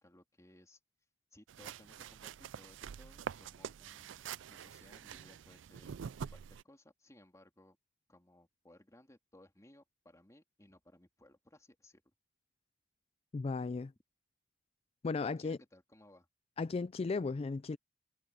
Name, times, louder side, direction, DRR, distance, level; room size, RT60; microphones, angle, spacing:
voice 1, 0.0-0.8 1.3-6.0 6.3-7.8 8.1-12.0 15.2-16.3, left 1 dB, 15° left, 3.2 m, -62 dB
sound 1, 1.5-6.6, right 7 dB, 75° right, 0.4 m, -46 dB
voice 2, 13.3-13.9 15.0-15.6 16.6-17.8, left 4 dB, 30° left, 0.3 m, -35 dB
head